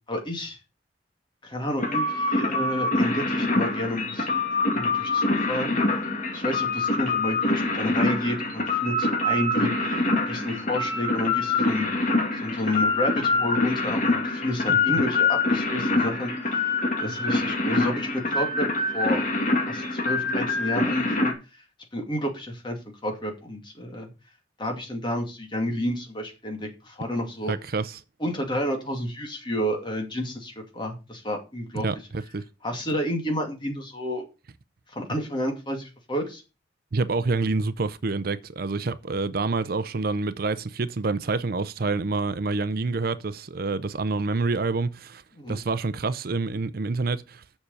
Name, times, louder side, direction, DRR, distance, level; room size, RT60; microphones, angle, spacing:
voice 1, 0.1-0.6 1.4-4.4 4.7-5.7 6.3-9.9 10.3-11.9 12.3-16.6 17.0-18.7 18.9-19.3 19.7-21.3 21.9-24.1 24.6-27.5 28.2-31.9 32.6-34.2 34.9-36.4 45.4-45.6, left 1 dB, 25° left, 2.4 m, -30 dB
sound 1, 1.8-21.3, left 2 dB, 45° left, 2.4 m, -25 dB
voice 2, 27.5-28.0 31.7-32.4 36.9-45.2 45.5-47.4, right 3 dB, 55° right, 0.6 m, -27 dB
7.2 x 6.5 x 7.0 m
head